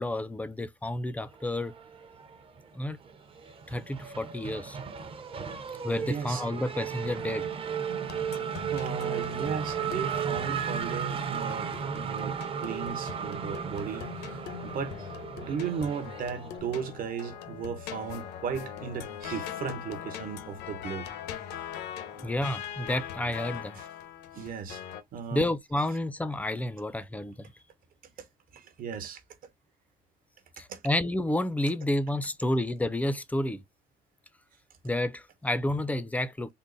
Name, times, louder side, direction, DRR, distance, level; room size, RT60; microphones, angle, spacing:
voice 1, 0.0-1.7 2.7-3.0 3.7-4.8 5.8-7.5 22.2-23.8 25.3-27.5 30.6-33.6 34.8-36.5, left 1 dB, 10° left, 0.4 m, -30 dB
Race car auto racing / Accelerating revving vroom, 1.6-2.6 2.9-16.6, right 7 dB, 35° right, 0.7 m, -35 dB
voice 2, 5.9-6.4 8.7-15.1 15.4-21.1 22.1-22.3 23.8-23.9 24.3-24.8 25.1-25.5 28.2-28.3 28.5-29.2 30.7-30.8, right 6 dB, 55° right, 1.1 m, -36 dB
sound 1, 8.1-25.0, left 9 dB, 85° left, 0.8 m, -42 dB
3.8 x 2.0 x 3.9 m
cardioid pair, 110°, 17 cm